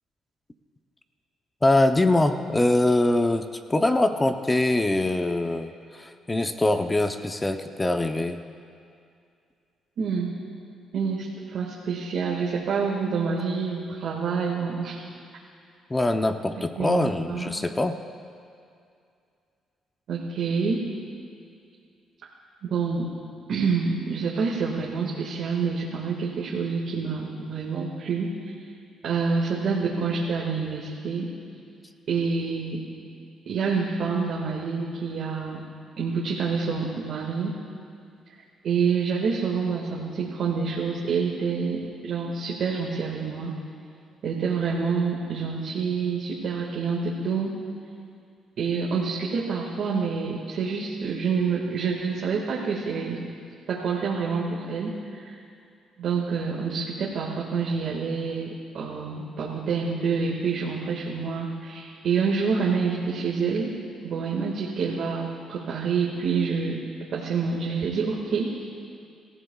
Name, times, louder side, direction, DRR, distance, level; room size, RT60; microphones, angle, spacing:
voice 1, 1.6-8.4 15.9-18.0, left 2 dB, 15° left, 7 dB, 0.7 m, -23 dB
voice 2, 10.0-10.3 10.9-15.0 16.8-17.5 20.1-20.8 22.6-23.1 23.5-28.3 29.0-31.3 32.1-32.8 33.5-35.6 36.0-37.6 38.6-43.5 44.2-47.6 48.6-53.2 53.7-55.4 56.0-58.5 58.7-63.7 64.0-66.8 67.1-68.7, right 5 dB, 65° right, -3 dB, 1.9 m, -27 dB
25.0 x 15.0 x 2.4 m, 2.4 s
cardioid pair, 90°, 0 cm